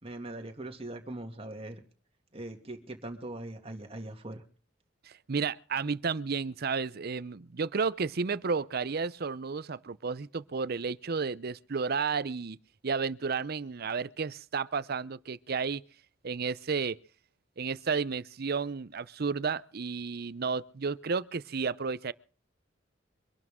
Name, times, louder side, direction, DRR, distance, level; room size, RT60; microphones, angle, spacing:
voice 1, 0.0-1.8 2.3-4.4, right 1 dB, 30° right, 2.4 m, -41 dB
voice 2, 5.0-12.6 12.8-15.8 16.2-17.0 17.6-22.1, right 5 dB, 55° right, 0.6 m, -32 dB
24.5 x 12.0 x 3.7 m
head